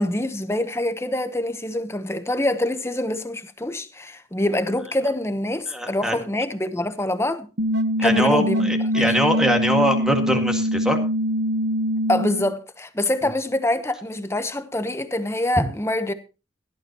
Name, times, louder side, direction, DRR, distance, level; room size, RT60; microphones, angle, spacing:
voice 1, 0.0-7.5 8.0-9.1 12.1-16.1, left 1 dB, 15° left, 1.0 m, -25 dB
voice 2, 5.7-6.2 8.0-11.0, equal, 5° right, 2.0 m, -22 dB
sound 1, 7.6-12.5, equal, 80° right, 1.1 m, -23 dB
16.5 x 12.0 x 3.0 m
head